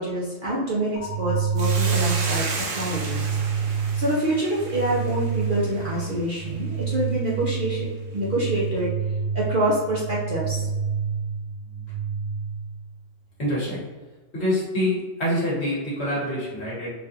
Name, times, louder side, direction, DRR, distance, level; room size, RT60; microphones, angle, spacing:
voice 1, 0.0-3.3 3.9-8.9 9.3-10.7, right 1 dB, 50° right, -6 dB, 0.7 m, -26 dB
sound 1, 1.0-12.9, right 6 dB, 85° left, 1.1 m, -28 dB
Hiss, 1.6-6.1, right 4 dB, 70° right, 0.9 m, -33 dB
voice 2, 13.4-13.8 14.3-16.9, left 1 dB, 55° left, -6 dB, 1.5 m, -26 dB
4.1 x 2.4 x 2.7 m, 1.3 s
omnidirectional pair, 1.4 m